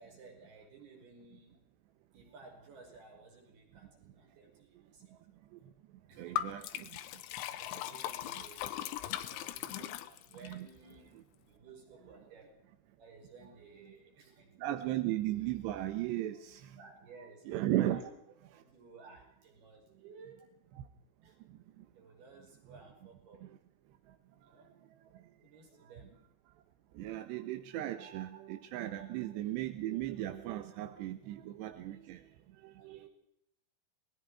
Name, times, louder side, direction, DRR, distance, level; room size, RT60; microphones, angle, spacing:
voice 1, 0.0-1.6 2.1-5.7 6.1-6.8 7.4-9.9 10.3-11.2 11.4-12.6 13.0-14.5 14.8-14.9 16.8-18.2 18.6-20.5 21.2-21.4 21.9-23.4 24.4-24.7 25.4-26.2 28.9-29.1 31.8-32.1 32.8-33.1, right 4 dB, 50° right, 2 dB, 7.0 m, -56 dB
voice 2, 6.2-7.0 10.4-10.7 14.6-16.8 17.5-18.0 20.8-20.9 21.5-21.9 23.4-23.5 24.1-24.2 24.4-24.5 25.1-25.2 26.9-32.3 32.5-33.0, right 14 dB, 70° right, 8 dB, 2.9 m, -36 dB
Liquid, 6.4-10.6, left 13 dB, 75° left, 3.3 m, -39 dB
27.5 x 20.5 x 4.8 m, 0.74 s
omnidirectional pair, 5.9 m